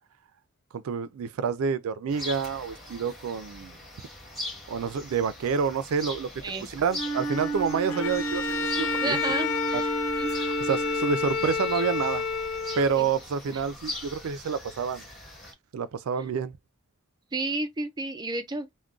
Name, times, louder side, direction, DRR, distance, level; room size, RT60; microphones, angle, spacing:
voice 1, 0.7-3.8 4.7-6.3 6.7-9.2 9.7-9.8 10.3-12.2 12.8-15.0 15.7-16.5, right 6 dB, 85° right, 0.4 m, -28 dB
sound 1, 2.1-15.5, left 2 dB, ahead, 1.9 m, -42 dB
Wind instrument woodwind instrument, 6.9-11.4, right 4 dB, 40° left, 1.2 m, -33 dB
Bowed string instrument, 7.9-13.2, left 5 dB, 70° left, 0.7 m, -30 dB
voice 2, 9.0-9.9 10.2-10.3 13.0-13.1 13.5-13.6 17.3-18.7, right 2 dB, 20° right, 0.4 m, -31 dB
3.7 x 2.1 x 2.3 m
head